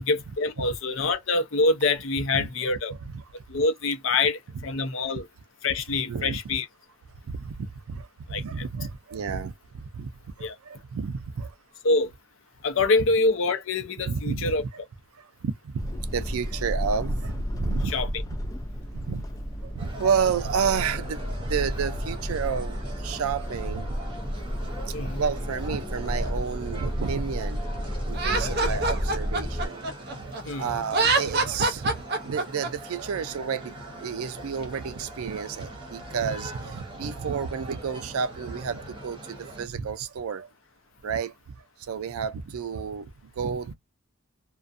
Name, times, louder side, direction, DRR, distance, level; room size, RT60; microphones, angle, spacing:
voice 1, 0.0-2.9 3.5-5.2 5.6-6.7 8.3-8.7 10.4-10.6 11.8-12.1 12.6-14.6 17.8-18.1 24.9-25.2 30.4-30.8, left 3 dB, 65° left, 0.6 m, -25 dB
voice 2, 6.1-6.4 7.3-10.1 10.4-11.5 14.1-14.7 15.2-17.9 18.9-19.2 19.6-24.0 24.9-27.6 28.0-29.9 30.2-30.3 30.6-40.5 41.0-41.3 41.8-43.7, right 6 dB, 90° right, 0.4 m, -31 dB
sound 1, 15.8-29.7, equal, 15° left, 0.4 m, -32 dB
sound 2, 19.8-39.7, right 1 dB, 25° right, 0.9 m, -41 dB
Laughter, 28.1-30.4 30.8-32.7, right 3 dB, 50° right, 0.7 m, -25 dB
2.4 x 2.2 x 2.5 m
head